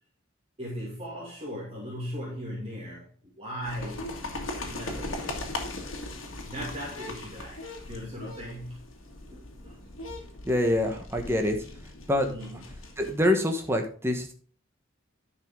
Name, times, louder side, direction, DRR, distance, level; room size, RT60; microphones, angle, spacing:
voice 1, 0.6-5.5 6.1-8.8 9.3-9.8 12.2-12.6, equal, 30° right, -5 dB, 2.5 m, -39 dB
sound 1, 3.6-13.3, left 2 dB, 80° left, 2.0 m, -39 dB
voice 2, 10.4-11.6 12.1-12.3 13.0-14.3, left 1 dB, 10° right, 4 dB, 1.2 m, -25 dB
10.5 x 5.8 x 3.7 m, 0.43 s
head